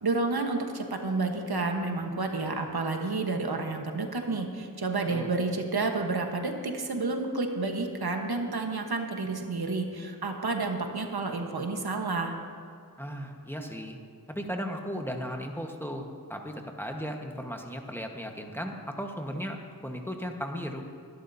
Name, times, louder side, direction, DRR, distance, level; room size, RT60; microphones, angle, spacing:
voice 1, 0.0-12.3, right 3 dB, 80° right, 3 dB, 1.3 m, -30 dB
voice 2, 13.0-14.0 14.3-19.6 19.8-20.8, equal, 5° left, 2 dB, 1.3 m, -36 dB
24.0 x 11.0 x 2.8 m, 2.3 s
wide cardioid pair, 50°, 37 cm